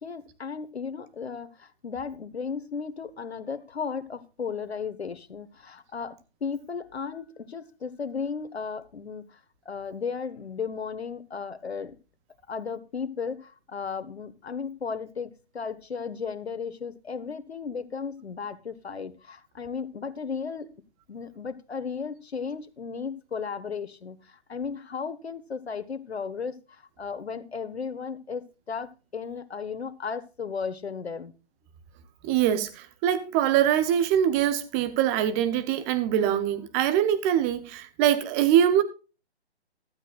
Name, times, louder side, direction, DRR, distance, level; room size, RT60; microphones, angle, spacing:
voice 1, 0.0-9.4 9.6-11.9 12.5-20.7 21.1-31.3, left 5 dB, 70° left, 1.5 m, -35 dB
voice 2, 32.2-38.8, right 10 dB, 15° right, 0.7 m, -23 dB
15.5 x 12.5 x 2.4 m
figure-of-eight pair, 140°, 33 cm